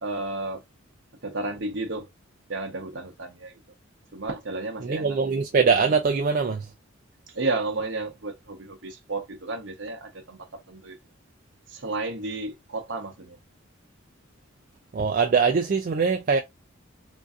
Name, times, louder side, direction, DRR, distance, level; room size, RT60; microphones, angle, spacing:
voice 1, 0.0-0.6 1.2-2.1 2.5-3.6 4.1-5.2 7.3-10.4 10.7-11.0 11.7-13.4, right 2 dB, 60° right, 0.8 m, -32 dB
voice 2, 4.8-6.7 14.9-16.4, right 5 dB, 40° right, 0.3 m, -22 dB
3.8 x 2.6 x 2.4 m
head